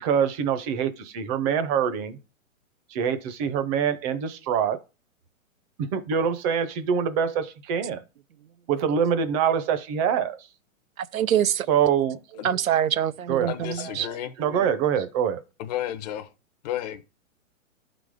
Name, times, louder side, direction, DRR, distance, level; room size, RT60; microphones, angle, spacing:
voice 1, 0.0-2.2 2.9-4.8 5.9-8.0 8.7-10.4 11.7-12.6 13.3-13.5 13.8-13.9 14.4-15.4, right 8 dB, 25° right, 0.8 m, -25 dB
voice 2, 11.0-11.7 12.4-14.1, right 10 dB, 90° right, 0.6 m, -25 dB
voice 3, 13.5-14.3 15.6-16.3 16.6-17.0, left 12 dB, 30° left, 0.6 m, -32 dB
11.5 x 4.0 x 4.9 m
hypercardioid pair, 135°, 40 cm